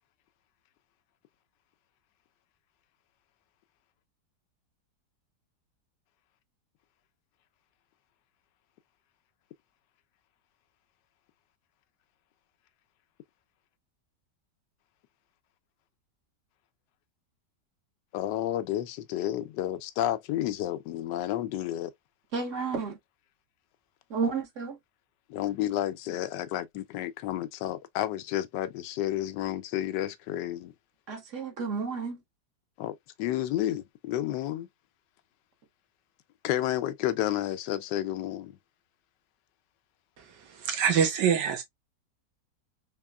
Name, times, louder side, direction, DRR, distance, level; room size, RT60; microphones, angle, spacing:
voice 1, 18.1-21.9 25.3-30.7 32.8-34.7 36.4-38.6, left 13 dB, 90° left, 1.2 m, -31 dB
voice 2, 22.3-23.0 24.1-24.8 31.1-32.2, right 5 dB, 55° right, 1.1 m, -31 dB
voice 3, 40.6-41.6, right 7 dB, 85° right, 1.5 m, -24 dB
4.2 x 3.0 x 2.2 m
omnidirectional pair, 1.8 m